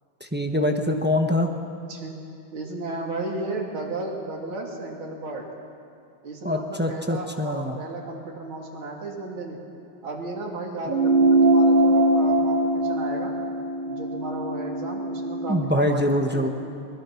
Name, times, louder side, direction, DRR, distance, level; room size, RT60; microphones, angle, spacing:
voice 1, 0.2-1.5 6.4-7.8 15.5-16.5, left 1 dB, 10° right, 3 dB, 0.4 m, -24 dB
voice 2, 2.5-5.4 6.2-9.6 10.0-13.3 13.9-16.5, right 2 dB, 75° right, -1 dB, 3.2 m, -34 dB
sound 1, 10.9-15.7, right 1 dB, 15° left, 5.6 m, -21 dB
22.0 x 20.0 x 5.9 m, 2.5 s
omnidirectional pair, 2.2 m